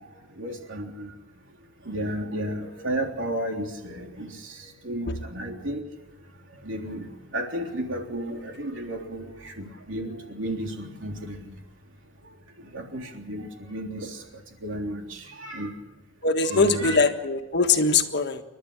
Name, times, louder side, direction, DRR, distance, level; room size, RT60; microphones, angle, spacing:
voice 1, 0.4-1.1 1.9-4.3 4.8-5.8 6.7-7.0 7.3-9.3 9.6-11.5 12.7-14.1 14.6-15.0 15.4-15.7 16.4-17.0, right 1 dB, 70° right, 2 dB, 3.5 m, -32 dB
voice 2, 16.2-18.4, left 4 dB, 55° left, 6 dB, 1.6 m, -22 dB
29.5 x 11.5 x 8.7 m, 1.1 s
head